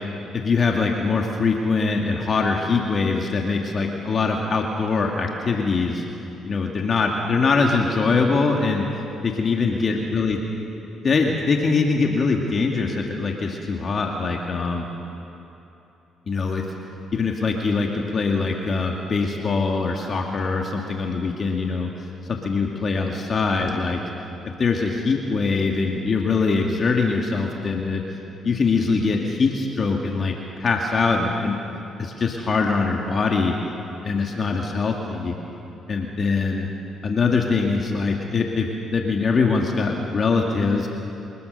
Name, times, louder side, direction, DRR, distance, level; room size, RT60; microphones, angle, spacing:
voice 1, 0.3-6.0 6.5-8.8 9.2-10.4 11.0-14.9 16.3-16.6 17.1-24.0 24.6-28.0 28.4-30.3 30.6-31.6 32.0-33.6 34.0-35.3 35.9-36.7 37.0-40.9, left 4 dB, 45° left, 1 dB, 2.3 m, -22 dB
25.0 x 20.0 x 6.8 m, 3.0 s
supercardioid pair, 60°, 0 cm